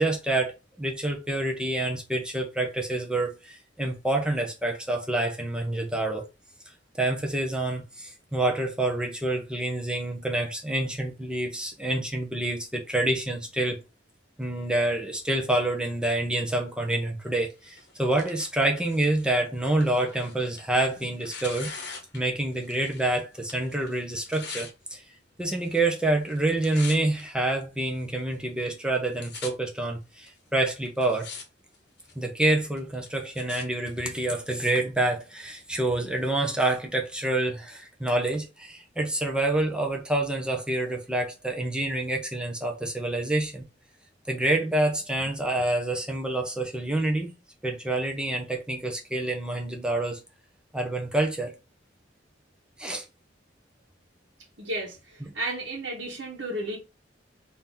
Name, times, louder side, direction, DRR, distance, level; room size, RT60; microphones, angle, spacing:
voice 1, 0.0-6.3 7.0-13.8 14.4-21.7 22.1-25.0 25.4-31.3 32.2-43.6 44.3-47.3 47.6-50.2 50.7-51.5 52.8-53.0 55.2-55.3, right 2 dB, 5° right, 0.7 m, -27 dB
Tearing, 17.6-23.1 23.4-24.7 25.5-26.0 26.3-27.2 27.9-28.0 28.7-28.8 28.9-29.5 30.3-30.4 30.9-31.4 31.7-32.2 32.8-33.6 34.4-34.5, left 5 dB, 60° left, 1.0 m, -42 dB
voice 2, 54.6-56.8, right 1 dB, 70° right, 1.1 m, -33 dB
3.9 x 2.8 x 3.5 m
head